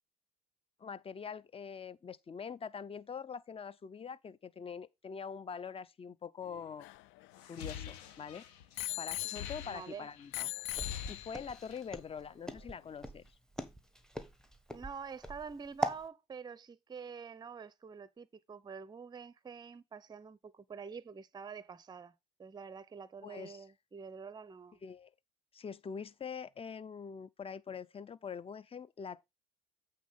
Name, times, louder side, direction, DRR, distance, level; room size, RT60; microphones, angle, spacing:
voice 1, 0.8-6.9 7.5-8.5 9.0-10.5 11.1-13.2 23.2-23.6 24.8-25.1 25.5-29.2, left 6 dB, 25° left, 0.7 m, -44 dB
Bicycle bell, 6.5-8.1 8.8-9.9 10.3-11.6 12.3-12.4, left 17 dB, 65° left, 0.5 m, -41 dB
sound 1, 7.3-10.3 10.6-11.9, left 8 dB, 80° left, 1.5 m, -46 dB
voice 2, 9.7-10.1 14.7-22.1 22.4-24.8, right 5 dB, 20° right, 0.7 m, -47 dB
Walk footsteps, 10.7-16.0, right 1 dB, 5° left, 1.5 m, -40 dB
8.4 x 4.1 x 5.3 m
hypercardioid pair, 75°, 21 cm